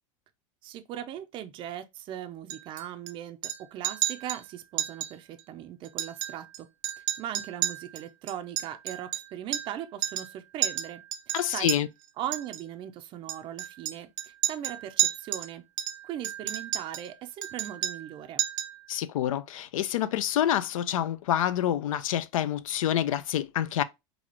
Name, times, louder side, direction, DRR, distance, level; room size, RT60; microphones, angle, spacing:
voice 1, 0.6-6.7 7.0-11.7 12.2-15.6 16.0-18.4, right 11 dB, 30° right, 0.4 m, -39 dB
Chink clink, 2.5-3.1 3.4-3.6 3.8-4.4 4.8-5.1 5.4-5.5 5.8-6.6 6.8-9.8 10.0-10.3 10.6-11.8 12.3-12.6 13.3-15.5 15.8-17.1 17.4-18.1 18.4-18.8, right 13 dB, 75° right, 0.6 m, -31 dB
voice 2, 11.3-11.9 18.9-23.8, left 11 dB, 90° left, 0.4 m, -27 dB
4.1 x 2.3 x 2.8 m
supercardioid pair, 135°, 17 cm